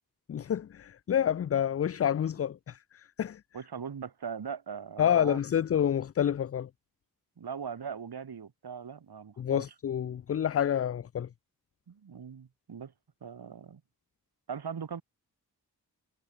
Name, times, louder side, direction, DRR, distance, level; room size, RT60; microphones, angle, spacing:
voice 1, 0.3-3.4 5.0-6.7 9.4-11.3, left 9 dB, 40° left, 0.4 m, -28 dB
voice 2, 3.5-5.4 7.4-9.6 11.9-12.9 13.2-13.8 14.5-15.0, right 6 dB, 75° right, 2.2 m, -40 dB
cardioid pair, 55°, 38 cm